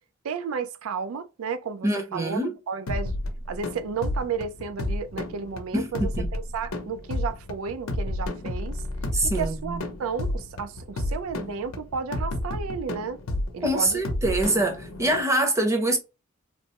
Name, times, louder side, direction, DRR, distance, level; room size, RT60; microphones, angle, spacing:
voice 1, 0.2-2.4 2.7-3.2 3.5-8.8 9.2-13.2 13.5-14.0, right 5 dB, 80° right, 0.4 m, -33 dB
voice 2, 1.8-2.5 5.7-6.3 9.1-9.8 13.6-16.0, right 1 dB, 15° right, 0.7 m, -25 dB
sound 1, 2.9-15.2, left 1 dB, 85° left, 0.7 m, -31 dB
3.2 x 2.0 x 2.8 m
head